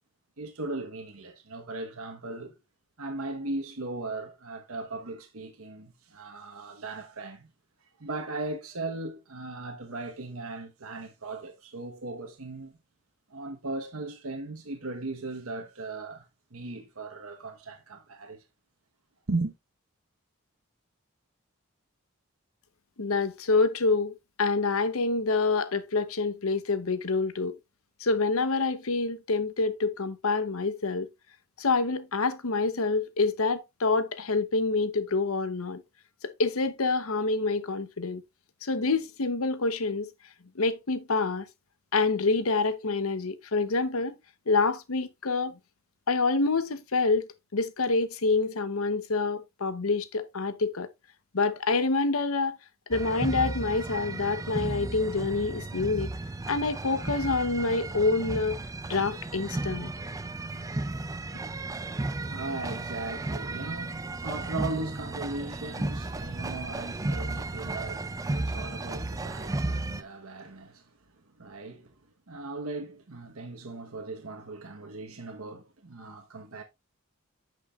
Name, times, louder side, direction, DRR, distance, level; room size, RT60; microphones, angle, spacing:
voice 1, 0.4-2.6 3.0-7.5 8.0-12.7 13.3-18.4 19.3-19.5 61.8-70.9 71.4-72.0 72.3-76.6, right 2 dB, 85° right, 1.2 m, -38 dB
voice 2, 23.0-24.1 24.4-27.6 28.0-31.1 31.6-35.8 36.2-38.2 38.6-40.1 40.6-41.5 41.9-44.2 44.5-45.6 46.1-50.9 51.3-52.6 52.9-56.1 56.5-58.6 58.9-59.9, left 3 dB, 80° left, 0.9 m, -27 dB
sound 1, 52.9-70.0, right 2 dB, 15° right, 0.4 m, -34 dB
10.0 x 6.2 x 2.4 m
head